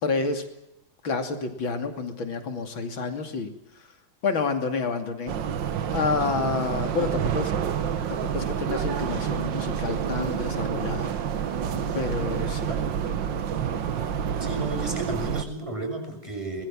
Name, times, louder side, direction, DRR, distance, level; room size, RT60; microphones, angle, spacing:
voice 1, 0.0-0.4 1.0-3.9 4.2-5.3 5.9-7.5 8.1-11.1 11.9-12.7, left 4 dB, 75° left, 6 dB, 3.5 m, -29 dB
sound 1, 5.3-15.4, right 8 dB, 70° right, 1.9 m, -28 dB
voice 2, 14.4-16.6, right 2 dB, 15° right, 4 dB, 6.3 m, -32 dB
24.0 x 21.5 x 7.5 m, 0.89 s
omnidirectional pair, 2.2 m